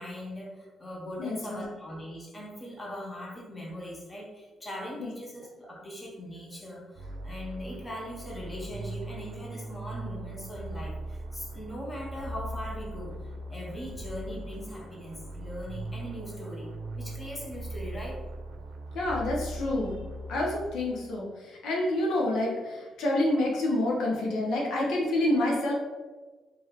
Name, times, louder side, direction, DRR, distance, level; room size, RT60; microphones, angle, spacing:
voice 1, 0.0-18.2, equal, 20° left, -3 dB, 1.1 m, -40 dB
voice 2, 1.2-1.6 5.0-5.1 18.9-20.0 20.3-25.7, left 1 dB, 75° left, -2 dB, 0.9 m, -28 dB
sound 1, 6.9-21.1, right 1 dB, 75° right, 0.6 m, -39 dB
3.1 x 2.8 x 4.0 m, 1.3 s
cardioid pair, 90°, 0 cm